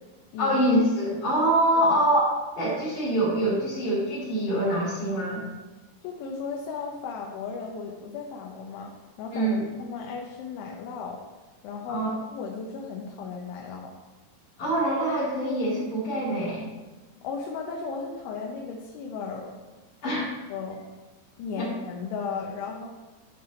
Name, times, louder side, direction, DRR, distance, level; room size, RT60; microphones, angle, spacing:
voice 1, 0.4-5.4 9.3-9.6 11.9-12.2 14.6-16.7 20.0-20.3 21.6-21.7, right 1 dB, 55° left, -9 dB, 3.4 m, -25 dB
voice 2, 6.0-8.9 9.2-11.2 11.6-12.0 12.3-13.9 17.2-19.5 20.0-20.2 20.5-20.8 21.4-22.9, left 5 dB, 90° left, 0 dB, 3.3 m, -35 dB
11.5 x 5.7 x 3.9 m, 1.2 s
omnidirectional pair, 5.3 m